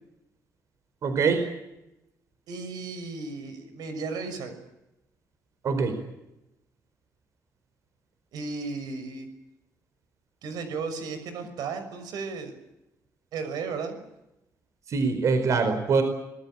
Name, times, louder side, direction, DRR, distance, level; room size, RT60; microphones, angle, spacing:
voice 1, 1.0-1.4 5.6-6.0 14.9-16.0, right 5 dB, 50° right, 8 dB, 4.7 m, -23 dB
voice 2, 2.5-4.6 8.3-9.3 10.4-12.5 13.3-14.0, right 4 dB, 85° right, 9 dB, 6.1 m, -34 dB
25.5 x 20.0 x 8.9 m, 0.91 s
cardioid pair, 145°, 7 cm